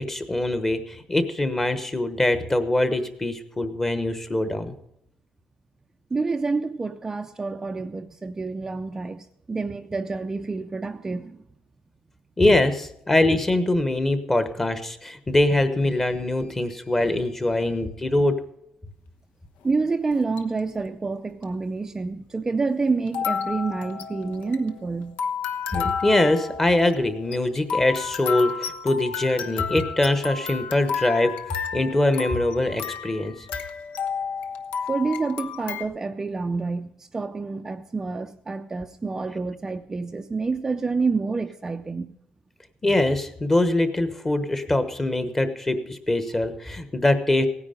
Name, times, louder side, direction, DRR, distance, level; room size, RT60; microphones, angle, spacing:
voice 1, 0.0-4.7 12.4-18.4 25.7-31.3 31.7-33.3 42.8-47.5, left 1 dB, 15° left, 1.1 m, -23 dB
voice 2, 6.1-11.4 19.6-25.2 34.9-42.1, right 4 dB, 15° right, 0.5 m, -28 dB
sound 1, 20.1-20.6 21.4-21.5 23.1-35.8, left 6 dB, 80° left, 1.0 m, -32 dB
17.0 x 9.8 x 5.1 m
cardioid pair, 160°, 3 cm